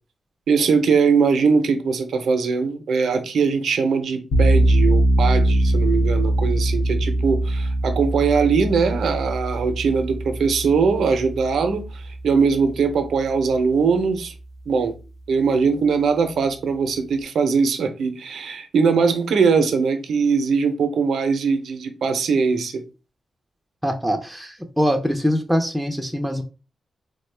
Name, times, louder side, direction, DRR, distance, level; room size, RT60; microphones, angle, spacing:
voice 1, 0.5-14.3 14.7-15.0 15.3-22.8, right 5 dB, 75° right, 0.5 m, -21 dB
sound 1, 4.3-13.2, right 1 dB, 80° left, 0.5 m, -22 dB
voice 2, 23.8-26.4, equal, 5° right, 0.4 m, -23 dB
3.5 x 2.1 x 3.2 m
cardioid pair, 85°, 0 cm